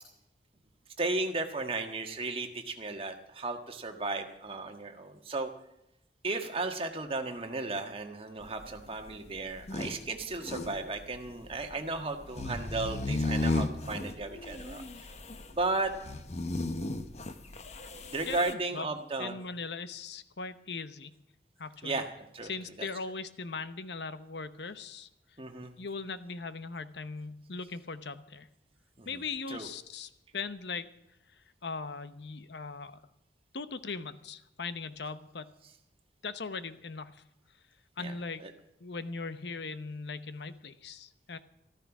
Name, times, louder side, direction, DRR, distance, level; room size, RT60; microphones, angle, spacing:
voice 1, 1.0-5.5 6.2-14.8 15.5-15.9 18.1-19.4 21.8-22.1 22.3-22.5 22.8-22.9 25.4-25.7 29.0-29.1 29.5-29.7 38.0-38.1 38.4-38.5, right 3 dB, 30° right, 5 dB, 1.5 m, -34 dB
sound 1, 8.4-18.5, left 2 dB, 35° left, 0.9 m, -35 dB
voice 2, 18.3-21.1 21.6-22.0 22.4-25.1 25.8-28.5 29.0-30.9 31.3-33.0 33.5-35.5 36.2-37.2 38.0-38.4 38.8-41.4, left 4 dB, 70° left, 12 dB, 0.9 m, -39 dB
14.0 x 13.5 x 6.1 m, 0.85 s
head